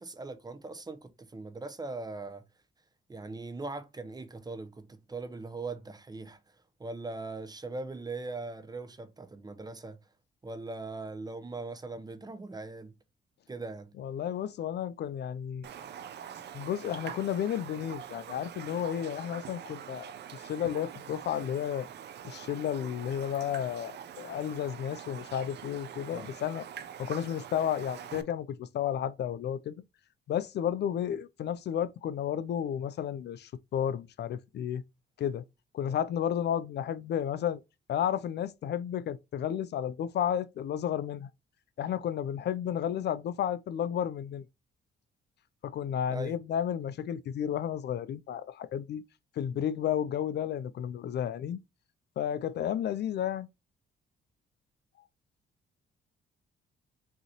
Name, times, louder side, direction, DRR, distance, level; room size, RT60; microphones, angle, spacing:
voice 1, 0.0-2.4 3.1-6.4 6.8-10.0 10.4-12.9 13.5-13.9 26.1-26.3 46.1-46.4, right 3 dB, 20° right, 0.8 m, -40 dB
voice 2, 14.0-15.7 16.5-21.9 22.2-23.9 24.2-26.7 27.0-29.8 30.3-34.8 35.2-35.4 35.7-37.6 37.9-41.3 41.8-44.4 45.6-49.0 49.4-51.6 52.2-53.5, left 9 dB, 60° left, 0.4 m, -32 dB
Raindrop, 15.6-28.2, right 9 dB, 60° right, 0.6 m, -44 dB
5.4 x 2.9 x 2.9 m
cardioid pair, 90°, 20 cm